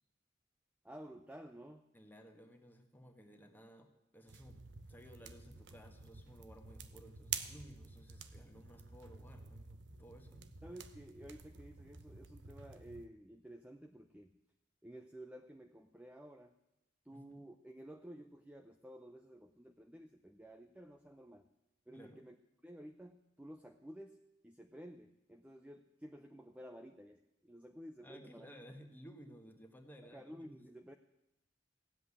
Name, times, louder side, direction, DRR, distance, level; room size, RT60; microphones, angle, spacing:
voice 1, 0.8-1.9 10.6-14.3 14.8-16.5 17.0-21.5 21.9-22.4 22.6-28.5 30.0-30.9, right 1 dB, 5° right, 5 dB, 0.6 m, -53 dB
voice 2, 1.9-4.6 4.9-10.5 17.1-17.5 21.9-22.2 28.0-30.6, equal, 10° left, 4 dB, 1.5 m, -57 dB
sound 1, 4.3-13.1, right 7 dB, 80° right, 1.0 m, -49 dB
16.5 x 7.9 x 9.8 m, 0.88 s
head